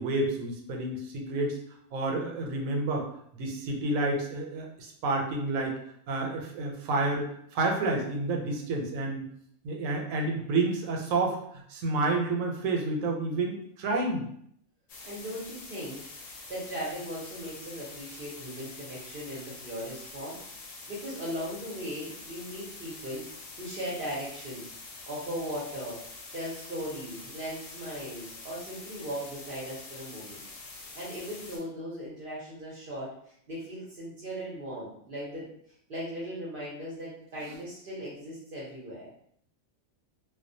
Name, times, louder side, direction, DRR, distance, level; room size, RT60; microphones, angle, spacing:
voice 1, 0.0-1.6 1.9-3.1 3.3-5.8 6.1-9.3 9.6-14.2, right 2 dB, 80° right, 1 dB, 1.0 m, -29 dB
sound 1, 14.9-31.6, left 3 dB, 85° left, 1.0 m, -45 dB
voice 2, 15.1-23.2 23.6-24.7 25.1-26.0 26.3-30.4 30.7-35.5 35.9-39.1, equal, 55° right, -6 dB, 0.7 m, -38 dB
2.3 x 2.1 x 2.6 m, 0.68 s
omnidirectional pair, 1.4 m